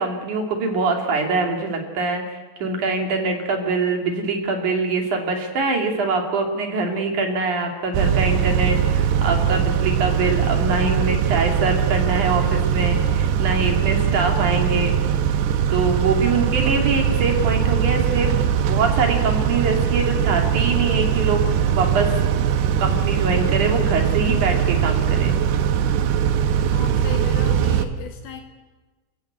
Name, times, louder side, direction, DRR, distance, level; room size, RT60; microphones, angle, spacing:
voice 1, 0.0-15.0 15.7-22.2 22.8-25.4, right 3 dB, 50° right, 2 dB, 3.8 m, -24 dB
Car / Idling / Accelerating revving vroom, 7.9-27.9, right 8 dB, 80° right, 3.2 m, -21 dB
voice 2, 26.7-28.4, left 8 dB, 65° left, 3 dB, 4.2 m, -36 dB
28.5 x 15.0 x 8.2 m, 1.3 s
omnidirectional pair, 4.8 m